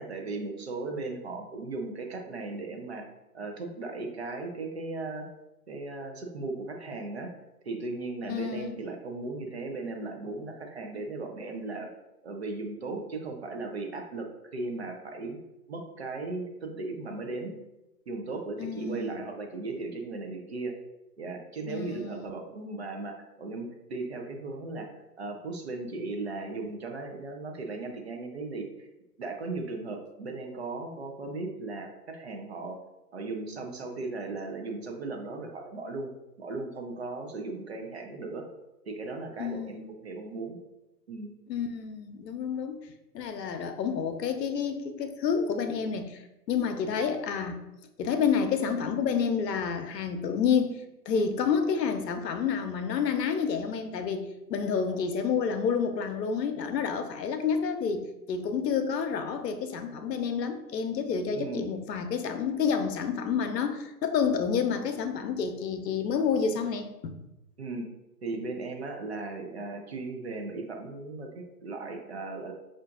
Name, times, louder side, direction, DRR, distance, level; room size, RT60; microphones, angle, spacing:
voice 1, 0.0-3.1 3.3-5.3 5.7-7.3 7.6-11.9 12.2-15.4 15.7-17.5 18.1-20.7 21.2-28.7 29.2-32.8 33.1-36.1 36.4-38.5 38.9-40.6 41.1-41.3 61.3-61.7 67.6-67.9 68.2-72.5, right 3 dB, 45° right, 3 dB, 0.5 m, -37 dB
voice 2, 8.3-8.8 18.6-19.2 21.7-22.3 39.4-39.9 41.5-47.6 48.0-50.8 51.1-67.1, left 6 dB, 80° left, 7 dB, 0.7 m, -29 dB
5.7 x 2.5 x 2.4 m, 0.96 s
hypercardioid pair, 155°, 49 cm